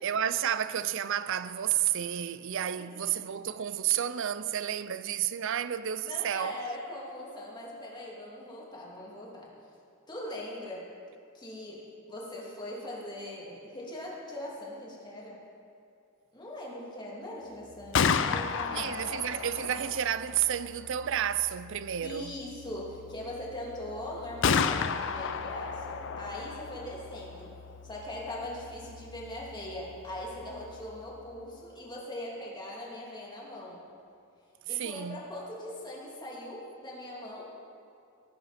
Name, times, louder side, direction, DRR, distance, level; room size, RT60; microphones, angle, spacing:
voice 1, 0.0-6.6 18.7-22.3 34.8-35.2, right 10 dB, 60° right, 0.5 m, -31 dB
voice 2, 6.0-9.5 10.1-10.9 11.3-15.4 16.3-19.2 22.0-27.5 27.8-33.8 34.7-37.5, left 1 dB, 20° left, 2.6 m, -41 dB
Gunshot gunfire, 17.7-31.5, left 6 dB, 60° left, 0.5 m, -34 dB
18.0 x 11.0 x 4.2 m
head